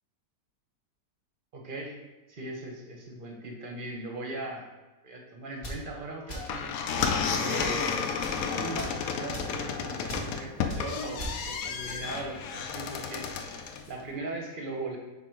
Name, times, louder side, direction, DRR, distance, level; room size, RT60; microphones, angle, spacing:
voice 1, 1.5-2.0 2.3-4.7 5.0-6.7 7.4-8.1 8.5-13.3 13.9-15.0, right 2 dB, 45° right, 1 dB, 0.7 m, -38 dB
sound 1, 5.6-5.9 6.3-6.6 7.0-7.2 7.6-7.8 8.2-8.4 8.8-9.0 9.3-9.6 10.1-10.3 10.7-10.8 11.2-11.4, right 1 dB, 40° left, 1.3 m, -39 dB
sound 2, 6.3-13.9, left 6 dB, 70° left, 0.8 m, -32 dB
5.8 x 3.6 x 4.5 m, 1.2 s
omnidirectional pair, 1.9 m